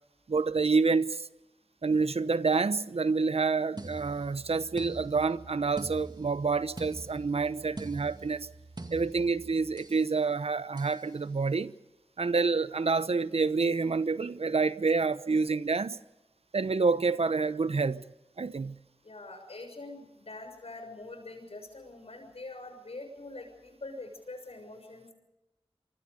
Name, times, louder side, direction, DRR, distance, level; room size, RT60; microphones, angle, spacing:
voice 1, 0.3-1.3 1.8-8.5 8.9-11.7 12.2-16.0 16.5-18.1 18.4-18.8, right 4 dB, 70° right, 0.9 m, -28 dB
sound 1, 3.8-10.1 10.8-11.1, right 2 dB, 40° right, 2.2 m, -45 dB
voice 2, 19.0-25.1, left 2 dB, 70° left, 6.7 m, -44 dB
25.5 x 24.0 x 5.3 m
cardioid pair, 40°, 11 cm